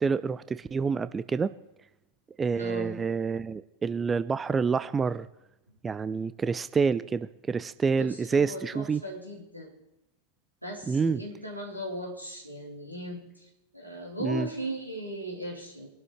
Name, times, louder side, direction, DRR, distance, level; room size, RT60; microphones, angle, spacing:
voice 1, 0.0-1.5 2.4-5.3 5.8-9.0 10.9-11.2 14.2-14.5, right 5 dB, 15° right, 15 dB, 0.4 m, -28 dB
voice 2, 2.5-3.0 8.0-9.8 10.6-13.5 13.7-15.9, equal, 90° right, -2 dB, 3.8 m, -38 dB
23.0 x 12.0 x 3.3 m, 0.90 s
figure-of-eight pair, 90°, 0 cm